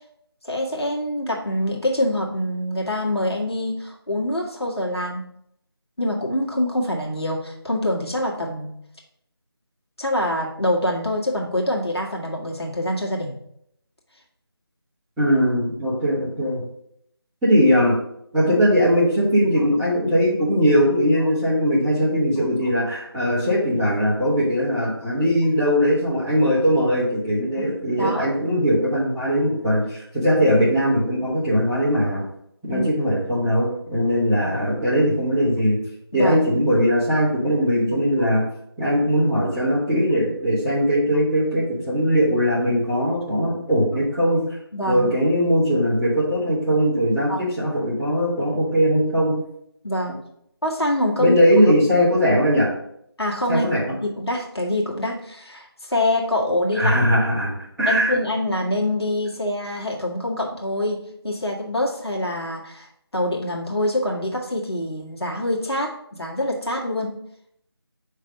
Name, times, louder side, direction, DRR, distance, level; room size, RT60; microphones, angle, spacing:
voice 1, 0.4-5.2 6.0-8.7 10.0-13.3 27.6-27.7 28.0-28.4 32.7-32.9 36.1-36.4 44.7-45.1 47.3-47.5 49.8-50.2 50.6-51.4 53.2-53.7 54.2-57.0 57.9-62.9 63.1-67.1, left 1 dB, 75° left, -2 dB, 1.7 m, -25 dB
voice 2, 15.2-16.6 17.4-17.9 18.3-32.2 32.6-35.8 36.1-38.4 38.8-44.4 44.9-49.3 51.2-52.7 53.5-53.9 56.7-57.5 57.8-58.1, equal, ahead, -17 dB, 1.4 m, -20 dB
5.6 x 3.3 x 5.2 m, 0.73 s
figure-of-eight pair, 165°, 13 cm